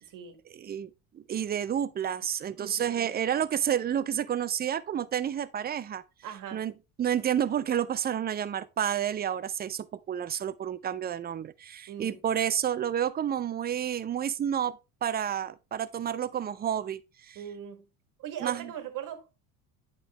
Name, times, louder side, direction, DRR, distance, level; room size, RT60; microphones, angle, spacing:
voice 1, 0.0-0.3 2.5-3.1 6.2-6.6 11.9-12.2 17.3-17.9 18.2-19.4, right 9 dB, 55° right, 1.6 m, -40 dB
voice 2, 0.5-6.0 6.5-6.7 7.0-17.4 18.4-18.7, right 9 dB, 25° right, 0.5 m, -30 dB
8.7 x 5.4 x 3.0 m
supercardioid pair, 90°, 39 cm